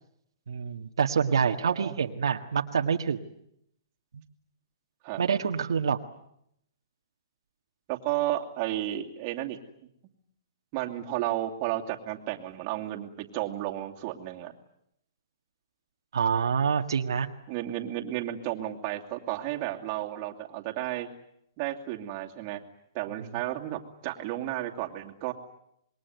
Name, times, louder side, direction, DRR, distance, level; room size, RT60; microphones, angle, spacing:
voice 1, 0.5-3.2 5.2-6.0 16.1-17.3, right 6 dB, 80° right, 4 dB, 1.7 m, -26 dB
voice 2, 1.5-1.9 5.0-5.2 7.9-9.6 10.7-14.5 17.5-21.1 21.6-22.6 22.9-25.3, right 14 dB, 35° right, 1 dB, 2.6 m, -33 dB
26.5 x 22.0 x 9.5 m, 0.75 s
hypercardioid pair, 155°, 2 cm